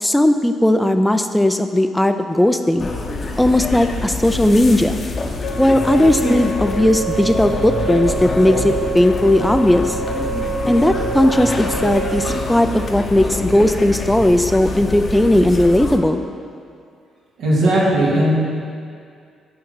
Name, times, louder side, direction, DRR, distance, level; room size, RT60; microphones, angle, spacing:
voice 1, 0.0-2.9 3.4-5.0 5.6-10.0 10.7-16.3, left 1 dB, 5° left, 8 dB, 0.3 m, -16 dB
sound 1, 2.8-16.0, left 3 dB, 40° left, 0.7 m, -26 dB
sound 2, 5.4-12.6, right 3 dB, 80° left, 0.5 m, -27 dB
voice 2, 17.4-18.3, right 1 dB, 80° right, -6 dB, 2.0 m, -16 dB
9.0 x 3.7 x 5.6 m, 2.3 s
cardioid pair, 90°, 0 cm